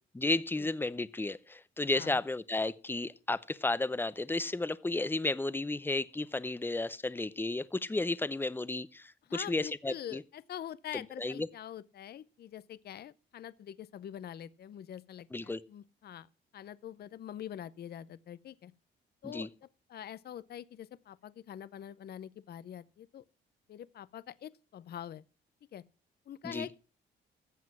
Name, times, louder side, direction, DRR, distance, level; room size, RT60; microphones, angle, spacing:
voice 1, 0.1-10.2 10.9-11.5 15.3-15.6 19.2-19.5 26.4-26.7, left 2 dB, 10° left, 0.6 m, -33 dB
voice 2, 9.2-16.3 16.5-18.7 19.2-23.2 23.7-25.2 25.7-25.8 26.3-26.8, left 10 dB, 55° left, 0.6 m, -45 dB
14.0 x 7.5 x 6.1 m
cardioid pair, 90°, 20 cm